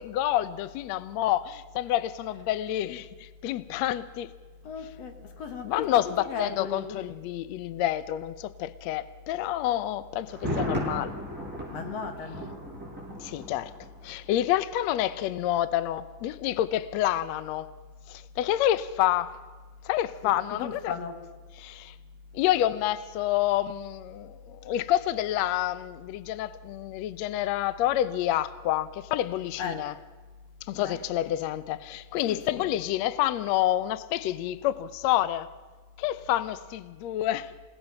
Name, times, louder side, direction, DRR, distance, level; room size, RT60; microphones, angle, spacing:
voice 1, 0.0-4.3 5.6-11.2 13.2-13.7 14.0-17.7 18.1-19.3 19.9-20.9 21.6-22.0 22.3-29.9 30.7-35.5 36.0-37.5, left 13 dB, 75° left, 1.7 m, -28 dB
voice 2, 4.6-7.0 11.7-12.6 20.2-21.2 29.6-29.9 30.7-31.0 32.2-32.8, left 5 dB, 55° left, 2.6 m, -37 dB
Thunder, 10.3-14.2 14.5-14.6, equal, 5° right, 7.1 m, -35 dB
29.0 x 17.5 x 5.9 m
omnidirectional pair, 3.7 m